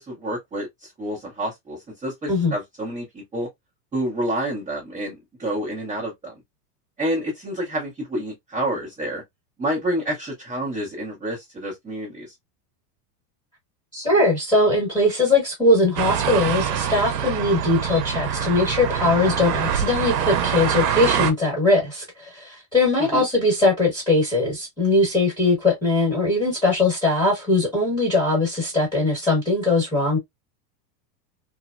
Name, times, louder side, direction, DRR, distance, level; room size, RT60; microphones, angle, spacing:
voice 1, 0.0-3.5 3.9-6.3 7.0-9.2 9.6-12.3 23.0-23.2, right 1 dB, 10° right, 0.6 m, -28 dB
voice 2, 13.9-30.2, left 2 dB, 10° left, 1.1 m, -20 dB
sound 1, 16.0-21.3, right 8 dB, 80° right, 0.7 m, -24 dB
3.1 x 2.0 x 2.3 m
supercardioid pair, 180°, 48 cm